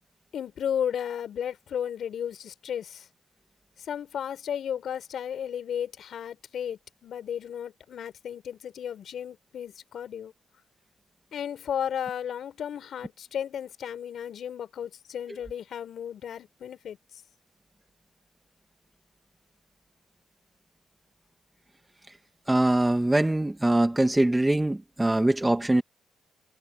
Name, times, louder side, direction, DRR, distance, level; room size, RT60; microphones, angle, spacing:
voice 1, 0.3-3.1 3.8-10.3 11.3-17.0, left 9 dB, 65° left, 4.9 m, -34 dB
voice 2, 22.5-25.8, right 1 dB, 10° right, 2.3 m, -23 dB
cardioid pair, 90°, 0 cm